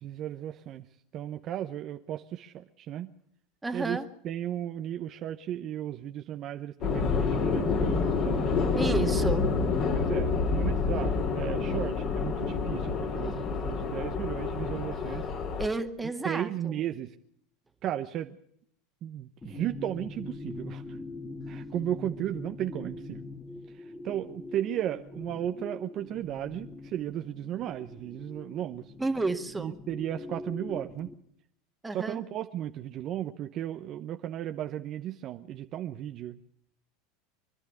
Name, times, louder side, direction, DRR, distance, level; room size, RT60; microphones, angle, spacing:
voice 1, 0.0-0.8 1.1-3.1 3.7-4.0 4.2-8.4 9.9-15.3 16.2-17.1 17.8-18.4 19.0-20.8 21.5-23.2 24.0-28.9 29.6-31.1 31.9-36.4, right 11 dB, 45° right, 7 dB, 0.9 m, -35 dB
voice 2, 3.6-4.1 8.7-9.5 15.1-15.2 15.6-16.9 29.0-29.8 31.8-32.2, right 3 dB, 10° right, 6 dB, 1.9 m, -31 dB
sound 1, 6.8-15.7, left 4 dB, 45° left, 3.6 m, -28 dB
sound 2, 19.4-31.1, left 2 dB, 15° left, 2.1 m, -43 dB
25.0 x 11.5 x 9.7 m, 0.70 s
hypercardioid pair, 90°, 0 cm